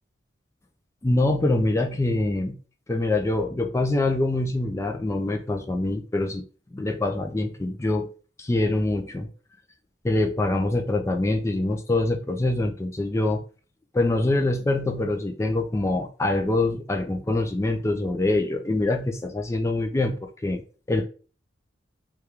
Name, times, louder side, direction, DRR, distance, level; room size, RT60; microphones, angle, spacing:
voice 1, 1.0-2.6 2.9-6.4 6.7-8.1 8.4-9.3 10.0-13.4 13.9-20.6 20.9-21.0, left 2 dB, 15° left, 0.4 m, -24 dB
3.5 x 2.3 x 2.9 m
head